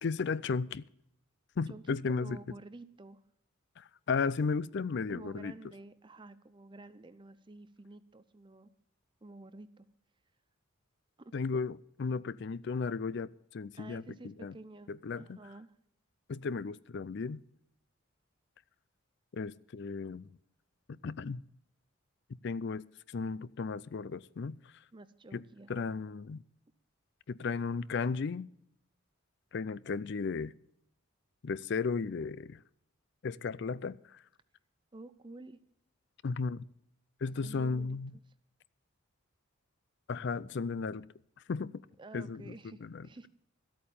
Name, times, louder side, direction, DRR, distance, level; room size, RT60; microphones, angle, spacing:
voice 1, 0.0-0.9 1.6-2.4 3.8-5.5 11.3-14.6 14.9-15.4 16.3-17.4 19.3-20.4 20.9-21.4 22.4-24.8 25.3-25.4 25.7-26.4 27.3-28.5 29.5-30.5 31.4-32.6 33.2-34.2 36.2-36.6 37.2-38.1 40.1-41.1 41.5-41.8 42.1-43.1, left 4 dB, 55° left, 0.4 m, -35 dB
voice 2, 1.7-3.2 5.1-8.7 9.2-9.9 11.2-11.3 13.7-14.9 15.2-15.7 24.9-25.9 34.9-35.6 37.4-38.0 42.0-43.3, right 2 dB, 20° right, 0.5 m, -50 dB
13.5 x 8.7 x 6.9 m
head